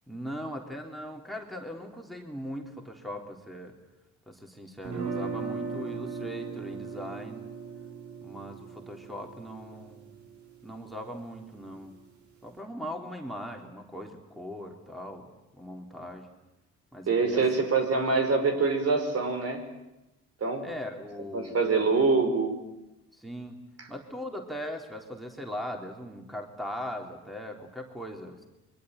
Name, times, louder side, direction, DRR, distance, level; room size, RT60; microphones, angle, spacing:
voice 1, 0.1-3.7 4.3-7.4 8.2-10.1 10.6-11.9 12.4-16.3 16.9-17.4 17.8-18.1 20.6-21.9 23.1-23.6 23.9-28.5, equal, ahead, 2 dB, 3.7 m, -40 dB
sound 1, 4.8-10.8, right 5 dB, 70° right, 5.4 m, -38 dB
voice 2, 17.1-19.6 20.4-20.7 21.3-22.6, right 4 dB, 55° right, 6 dB, 5.9 m, -25 dB
26.0 x 23.5 x 9.5 m, 0.95 s
cardioid pair, 90°, 30 cm